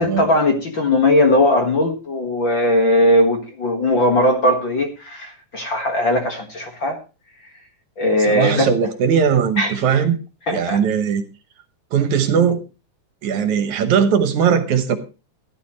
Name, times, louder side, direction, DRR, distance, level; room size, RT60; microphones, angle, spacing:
voice 1, 0.0-7.0 8.0-8.7 9.6-10.0 10.5-10.8, left 1 dB, 45° left, 3 dB, 1.9 m, -18 dB
voice 2, 8.2-10.2 10.5-11.2 11.9-12.6 13.2-15.0, right 7 dB, 70° right, 10 dB, 2.3 m, -19 dB
16.5 x 11.5 x 3.1 m, 0.31 s
omnidirectional pair, 3.7 m